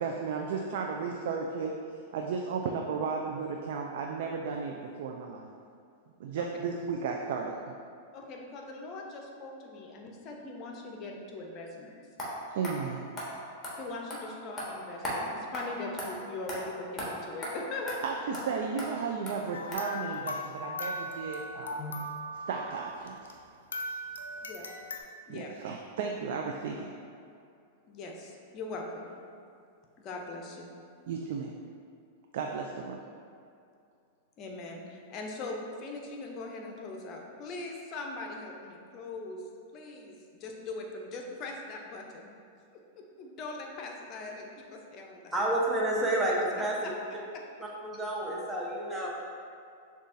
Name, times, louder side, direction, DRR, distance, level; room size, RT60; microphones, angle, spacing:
voice 1, 0.0-1.7 2.1-5.5 6.2-7.7 12.5-13.1 18.0-21.8 22.5-23.3 25.3-26.9 31.1-31.5 32.3-33.0, right 5 dB, 65° right, 1 dB, 0.3 m, -34 dB
voice 2, 8.1-12.0 13.8-18.3 21.8-22.0 24.4-24.7 25.3-25.6 27.9-29.1 30.0-30.7 34.4-39.4 39.7-42.3 42.7-45.4 48.9-49.1, left 2 dB, 40° left, 1 dB, 0.6 m, -41 dB
sound 1, 12.2-12.3 12.6-12.7 13.2-13.3 13.6-13.7 14.1-14.2 14.6-14.7 15.0-15.2 15.5-15.6 16.0-16.1 16.5-16.6 17.0-17.1 17.4-17.5 17.9-18.0 18.3-18.4 18.8-18.9 19.3-19.4 19.7-19.8, equal, 20° left, 1.3 m, -36 dB
sound 2, 19.5-23.4 23.7-25.0, left 1 dB, 85° left, 0.3 m, -39 dB
voice 3, 45.3-46.9 47.8-49.1, right 1 dB, 10° right, -4 dB, 0.8 m, -29 dB
6.4 x 2.4 x 2.6 m, 2.4 s
hypercardioid pair, 110°, 0 cm